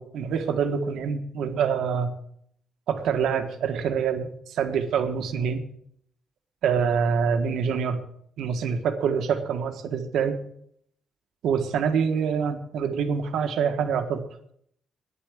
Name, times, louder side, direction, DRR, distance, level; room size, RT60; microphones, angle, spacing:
voice 1, 0.0-2.1 2.9-5.6 6.6-8.0 8.4-10.4 11.4-14.2, right 6 dB, 75° right, 7 dB, 1.5 m, -25 dB
10.0 x 8.5 x 8.1 m, 0.68 s
cardioid pair, 150°, 0 cm